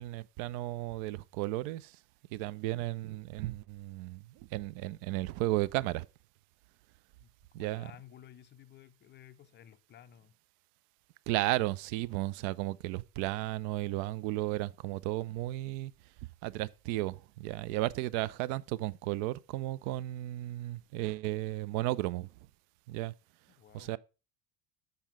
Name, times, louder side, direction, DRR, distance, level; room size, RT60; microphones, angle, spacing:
voice 1, 0.0-2.0 2.3-6.1 7.5-7.9 11.3-22.3 22.9-23.1 23.7-24.0, right 17 dB, 40° right, 0.4 m, -34 dB
voice 2, 7.5-10.3 23.6-23.9, left 10 dB, 25° left, 0.5 m, -54 dB
7.2 x 5.3 x 5.2 m
figure-of-eight pair, 70°, 47 cm